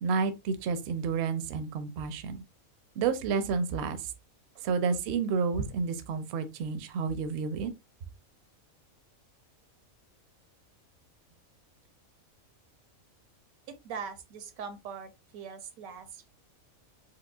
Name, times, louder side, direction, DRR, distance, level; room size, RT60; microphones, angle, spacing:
voice 1, 0.0-2.4 3.0-4.0 4.6-7.7, right 5 dB, 65° right, 0.7 m, -30 dB
voice 2, 13.7-16.3, right 6 dB, 85° right, 1.1 m, -42 dB
4.7 x 2.1 x 2.2 m
omnidirectional pair, 1.4 m